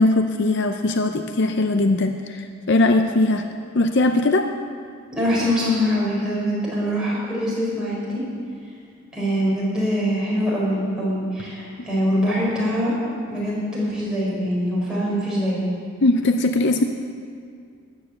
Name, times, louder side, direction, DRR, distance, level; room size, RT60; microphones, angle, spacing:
voice 1, 0.0-3.4 3.7-4.5 16.0-16.8, left 2 dB, 50° left, 6 dB, 0.6 m, -20 dB
voice 2, 5.1-8.2 9.1-12.9 13.3-15.6, equal, 5° right, -7 dB, 4.6 m, -23 dB
13.5 x 9.3 x 8.0 m, 2.3 s
head